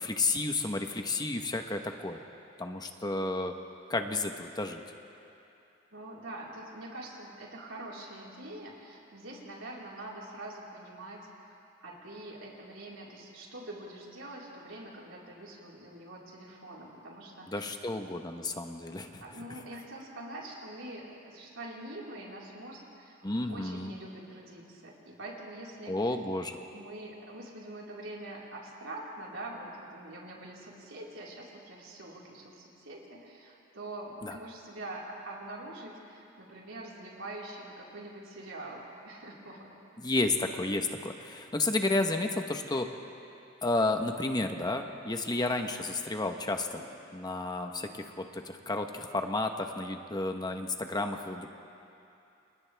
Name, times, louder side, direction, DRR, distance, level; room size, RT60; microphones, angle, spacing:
voice 1, 0.0-2.2 2.6-3.5 3.9-4.8 17.5-19.2 23.2-23.9 25.9-26.6 34.2-34.4 40.0-42.9 43.6-46.8 47.1-51.5, left 2 dB, 20° left, 5 dB, 1.1 m, -31 dB
voice 2, 5.9-17.8 19.2-26.0 26.7-39.7 46.7-46.8, right 1 dB, 85° right, -5 dB, 4.6 m, -44 dB
30.0 x 28.0 x 3.5 m, 2.8 s
head